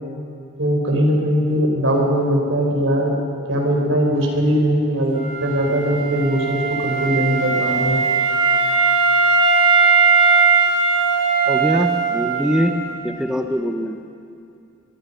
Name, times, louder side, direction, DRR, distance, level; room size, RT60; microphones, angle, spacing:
voice 1, 0.6-3.1 3.5-8.0, equal, 75° right, 1 dB, 5.0 m, -20 dB
Wind instrument woodwind instrument, 5.1-12.9, right 5 dB, 35° right, 6.3 m, -18 dB
voice 2, 11.5-12.7 13.0-14.0, equal, 5° right, 3 dB, 1.0 m, -22 dB
25.5 x 21.5 x 5.8 m, 2.5 s
head